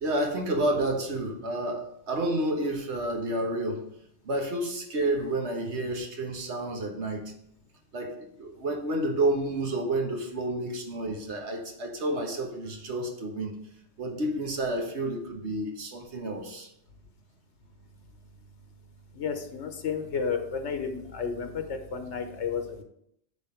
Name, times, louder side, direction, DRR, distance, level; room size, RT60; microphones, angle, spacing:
voice 1, 0.0-3.8 4.2-7.3 7.9-13.5 14.0-16.7, right 1 dB, 80° right, 2 dB, 1.6 m, -30 dB
voice 2, 19.2-22.8, left 6 dB, 90° left, 6 dB, 1.3 m, -32 dB
9.6 x 3.9 x 5.0 m, 0.75 s
omnidirectional pair, 1.1 m